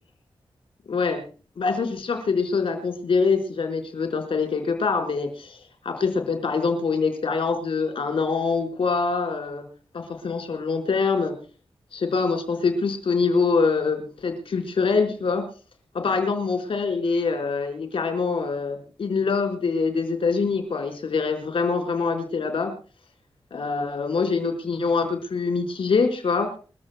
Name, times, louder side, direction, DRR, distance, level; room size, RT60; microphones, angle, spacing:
voice 1, 0.9-1.2 1.6-5.6 5.8-9.6 9.9-11.3 11.9-15.4 15.9-22.7 23.5-26.5, left 4 dB, 80° left, 5 dB, 4.5 m, -24 dB
28.5 x 15.0 x 2.2 m, 0.39 s
wide cardioid pair, 90°, 9 cm